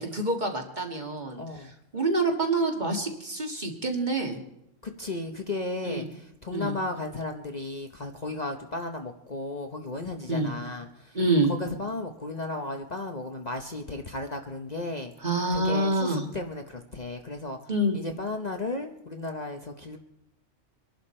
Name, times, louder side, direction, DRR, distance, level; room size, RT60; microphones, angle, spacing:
voice 1, 0.0-1.4 1.9-4.4 5.8-6.1 6.5-6.7 10.3-10.5 11.1-11.5 15.2-16.3 17.7-18.0, right 2 dB, 35° right, 3 dB, 1.9 m, -26 dB
voice 2, 1.4-1.7 4.8-11.2 11.5-15.1 15.5-17.6 17.9-20.0, left 2 dB, 35° left, 4 dB, 1.0 m, -34 dB
24.5 x 11.5 x 4.3 m, 0.82 s
omnidirectional pair, 1.3 m